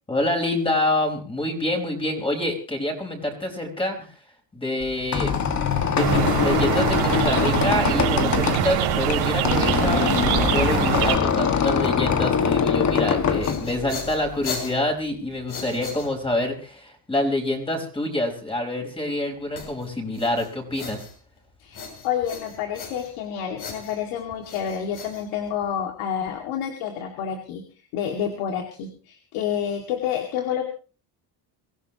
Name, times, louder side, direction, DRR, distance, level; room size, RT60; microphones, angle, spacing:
voice 1, 0.1-4.1 4.5-5.3 5.9-21.1, left 1 dB, 10° left, 3 dB, 4.7 m, -27 dB
Squeak, 4.8-14.4, left 6 dB, 35° left, 1.9 m, -23 dB
sound 1, 6.0-11.2, right 9 dB, 85° right, 5.2 m, -23 dB
sound 2, 13.4-16.5 19.6-21.4 21.7-23.3 23.6-25.8, left 5 dB, 55° left, 6.8 m, -38 dB
voice 2, 21.6-27.6 27.9-30.6, left 8 dB, 85° left, 3 dB, 2.4 m, -29 dB
24.5 x 15.5 x 3.0 m, 0.37 s
cardioid pair, 120°, 47 cm